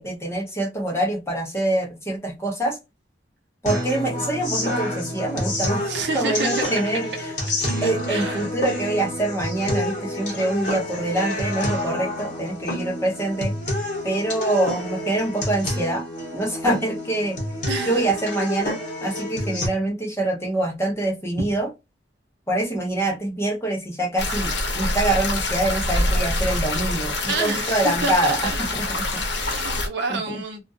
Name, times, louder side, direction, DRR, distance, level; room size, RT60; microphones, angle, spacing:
voice 1, 0.0-2.8 3.6-5.8 6.1-7.3 7.8-13.5 14.0-16.1 16.3-17.4 17.9-21.7 22.5-29.2 30.1-30.4, right 1 dB, 15° left, 0.7 m, -25 dB
sound 1, 3.7-19.7, left 1 dB, 45° left, 1.0 m, -28 dB
voice 2, 5.9-7.2 7.6-8.4 17.7-18.1 21.4-21.5 27.3-28.6 29.4-30.6, right 4 dB, 70° right, 0.8 m, -29 dB
sound 2, 24.2-29.9, left 2 dB, 75° left, 0.8 m, -25 dB
2.3 x 2.2 x 2.5 m
head